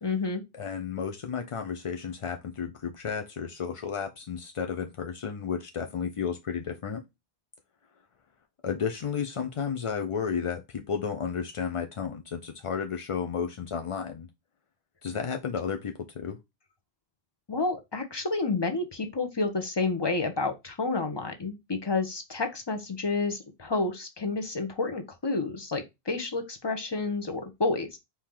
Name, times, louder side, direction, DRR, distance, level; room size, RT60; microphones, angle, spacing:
voice 1, 0.0-0.4 17.5-28.0, left 3 dB, 25° left, 0.8 m, -30 dB
voice 2, 0.5-7.0 8.6-14.3 15.0-16.4, left 6 dB, 50° left, 0.4 m, -32 dB
4.5 x 2.9 x 3.6 m
omnidirectional pair, 1.0 m